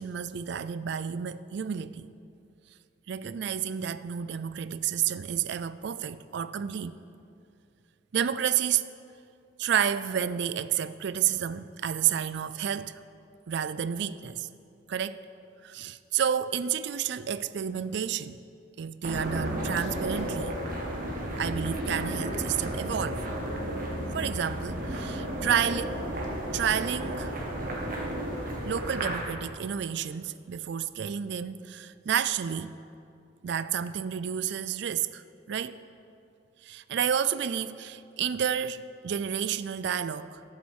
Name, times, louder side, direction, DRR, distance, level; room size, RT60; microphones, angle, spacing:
voice 1, 0.0-2.1 3.1-7.0 8.1-8.8 9.6-13.0 13.5-14.5 14.9-15.3 15.6-18.4 18.8-20.5 21.4-23.2 24.1-26.0 26.5-27.3 28.6-32.8 33.4-35.8 36.6-40.4, right 8 dB, 65° right, 0.4 m, -30 dB
sound 1, 19.0-29.2, equal, 50° right, 1.9 m, -33 dB
13.0 x 7.2 x 6.4 m
head